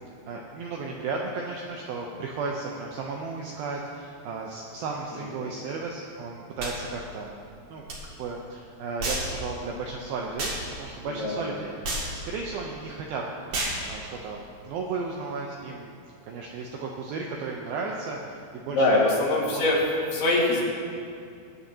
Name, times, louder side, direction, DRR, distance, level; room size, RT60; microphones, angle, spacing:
voice 1, 0.3-7.3 7.7-7.9 8.2-13.2 13.5-15.9 16.3-19.1 19.5-19.7, right 4 dB, 80° right, -1 dB, 2.2 m, -34 dB
voice 2, 5.1-5.5 11.0-11.5 18.7-19.8 20.1-20.6, left 2 dB, 65° left, -4 dB, 3.8 m, -24 dB
sound 1, 6.6-6.8 7.9-8.0 9.0-9.3 10.4-10.6 11.8-12.1 13.5-13.8, right 1 dB, 55° right, 3.3 m, -29 dB
22.5 x 8.8 x 2.8 m, 2.5 s
omnidirectional pair, 5.2 m